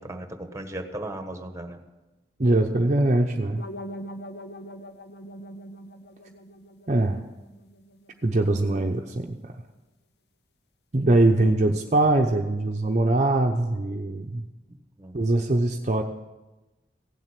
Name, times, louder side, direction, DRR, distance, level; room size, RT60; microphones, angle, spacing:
voice 1, 0.0-1.8 15.0-15.2, right 1 dB, 15° right, 6 dB, 1.3 m, -36 dB
voice 2, 2.4-3.6 6.9-7.2 8.2-9.5 10.9-14.4 15.1-16.0, right 2 dB, 45° right, 2 dB, 0.8 m, -22 dB
sound 1, 3.6-8.5, equal, 65° left, 0.8 m, -42 dB
16.5 x 7.6 x 8.4 m, 1.1 s
head